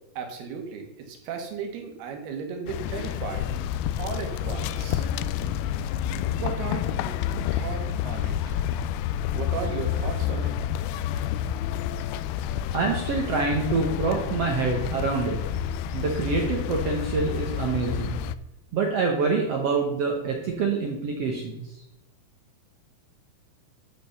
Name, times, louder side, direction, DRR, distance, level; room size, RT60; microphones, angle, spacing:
voice 1, 0.2-3.5 4.0-5.1 6.3-7.2 7.5-8.6 9.3-10.5, right 6 dB, 90° right, 4 dB, 3.5 m, -35 dB
sound 1, 2.7-18.3, left 10 dB, 85° left, 2.5 m, -29 dB
voice 2, 12.7-15.4 15.9-18.2 18.7-21.6, right 4 dB, 65° right, 1 dB, 1.6 m, -26 dB
11.5 x 5.2 x 6.8 m, 0.92 s
omnidirectional pair, 4.4 m